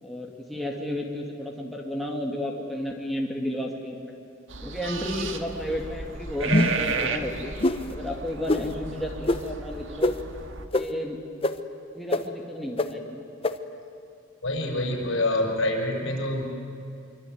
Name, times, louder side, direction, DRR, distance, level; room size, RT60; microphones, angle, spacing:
voice 1, 0.0-4.1 4.6-7.6 7.9-10.2 10.7-11.2 12.0-13.2, left 1 dB, ahead, -1 dB, 2.2 m, -32 dB
sound 1, 4.5-10.7, right 4 dB, 65° right, 1.8 m, -33 dB
sound 2, 6.5-6.9 7.6-7.8 8.5-8.6 9.3-9.4 10.0-10.1 10.7-10.8 11.4-11.5 12.1-12.2 12.8-12.9 13.4-13.5, left 1 dB, 30° left, 1.0 m, -22 dB
voice 2, 14.4-16.4, left 1 dB, 65° left, 2 dB, 6.2 m, -26 dB
25.5 x 24.0 x 9.4 m, 2.7 s
head